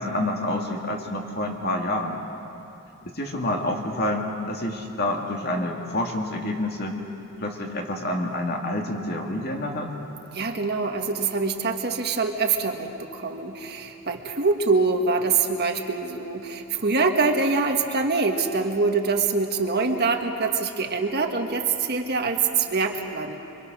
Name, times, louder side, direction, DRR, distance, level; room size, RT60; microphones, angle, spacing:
voice 1, 0.0-2.2 3.0-7.0 7.4-9.9, left 1 dB, 50° left, 1 dB, 2.6 m, -28 dB
voice 2, 10.3-23.4, right 4 dB, 50° right, 4 dB, 1.6 m, -24 dB
26.5 x 24.0 x 6.3 m, 2.9 s
head